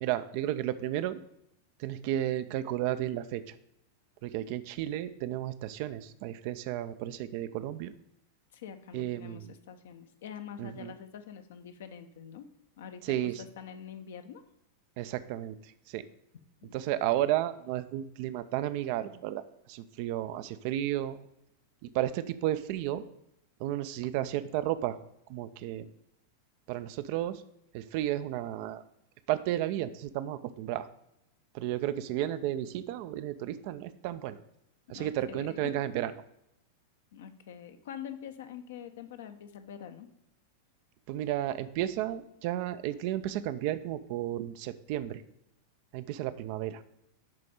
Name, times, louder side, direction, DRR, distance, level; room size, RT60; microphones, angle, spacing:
voice 1, 0.0-1.2 1.8-3.4 4.2-7.9 8.9-9.5 10.6-10.9 13.0-13.4 15.0-15.6 15.9-16.0 16.7-19.4 19.7-21.2 21.9-23.0 23.6-25.0 25.3-25.9 26.7-27.4 27.7-28.8 29.3-30.9 31.5-34.4 34.9-36.1 41.1-45.2 45.9-46.8, right 13 dB, 45° right, 13 dB, 0.5 m, -33 dB
voice 2, 8.5-12.5 12.8-14.4 16.6-16.9 34.9-35.7 37.1-40.1, left 8 dB, 60° left, 8 dB, 0.8 m, -45 dB
11.0 x 4.2 x 4.9 m, 0.80 s
figure-of-eight pair, 90°, 0 cm